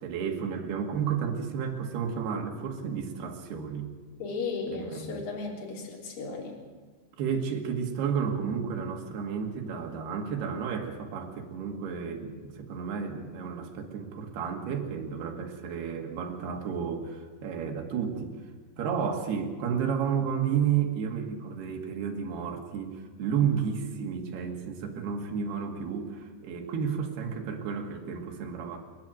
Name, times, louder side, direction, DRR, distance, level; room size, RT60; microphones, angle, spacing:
voice 1, 0.0-3.9 4.7-5.2 7.2-18.4 18.8-28.8, right 7 dB, 80° right, 3 dB, 4.2 m, -32 dB
voice 2, 4.2-6.6, left 4 dB, 60° left, -1 dB, 5.3 m, -35 dB
30.0 x 11.0 x 9.2 m, 1.4 s
omnidirectional pair, 4.6 m